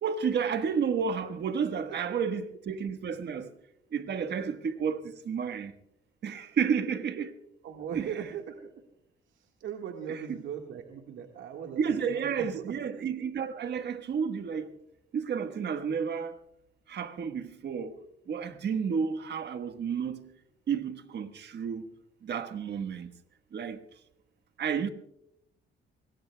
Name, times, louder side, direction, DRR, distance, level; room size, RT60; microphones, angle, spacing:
voice 1, 0.0-3.5 3.9-5.7 6.2-7.3 7.9-8.1 10.1-10.4 11.8-14.8 15.1-16.4 16.9-20.3 20.7-21.9 22.2-23.1 23.5-23.8 24.6-24.9, right 6 dB, 60° right, 1.4 m, -31 dB
voice 2, 7.6-8.7 9.3-12.9, right 8 dB, 80° right, 1.7 m, -39 dB
25.5 x 21.5 x 2.3 m
cardioid pair, 90°, 20 cm